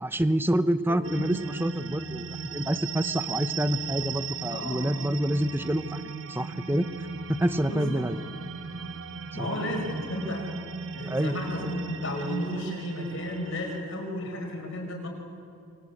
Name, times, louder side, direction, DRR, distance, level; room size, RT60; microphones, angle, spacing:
voice 1, 0.0-6.0 6.3-6.9 7.3-8.2 9.3-9.5 11.1-11.3, right 1 dB, 10° right, 11 dB, 0.8 m, -27 dB
voice 2, 0.9-1.3 4.5-4.9 7.7-8.0 9.3-10.5 10.9-15.1, left 1 dB, 65° left, 2 dB, 6.3 m, -33 dB
sound 1, 1.0-13.8, right 5 dB, 65° right, 1.1 m, -37 dB
28.0 x 24.5 x 8.5 m, 2.5 s
head